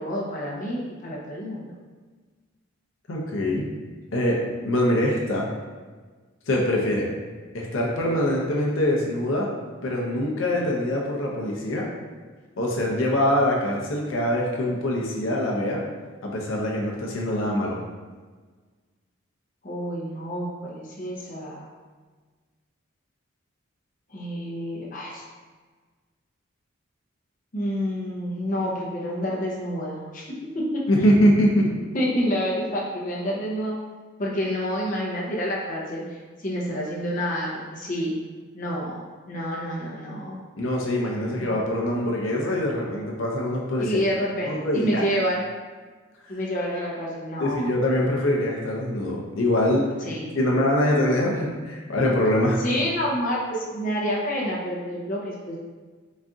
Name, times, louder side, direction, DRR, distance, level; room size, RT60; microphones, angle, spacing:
voice 1, 0.0-1.7 19.6-21.7 24.1-25.2 27.5-30.8 31.9-33.7 34.2-38.2 38.5-40.4 41.3-41.5 43.8-45.5 46.3-47.7 50.0-50.3 52.6-55.6, equal, 40° left, -4 dB, 0.7 m, -28 dB
voice 2, 3.1-3.7 4.1-5.5 6.5-7.1 7.5-9.5 9.8-11.9 12.6-15.8 16.2-17.8 30.9-31.7 40.6-44.0 44.5-45.0 47.4-49.9 50.3-52.6, left 1 dB, 80° left, -2 dB, 0.7 m, -23 dB
4.1 x 2.6 x 3.5 m, 1.4 s
head